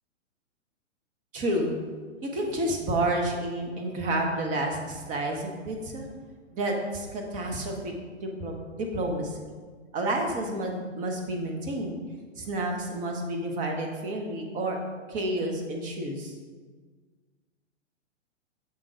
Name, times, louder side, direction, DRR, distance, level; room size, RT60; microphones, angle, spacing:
voice 1, 1.3-1.8 2.2-6.1 6.5-7.9 8.2-9.4 9.9-12.0 12.4-14.8 15.1-16.3, right 1 dB, 20° right, 2 dB, 0.9 m, -30 dB
7.1 x 3.7 x 4.9 m, 1.5 s
hypercardioid pair, 125°, 38 cm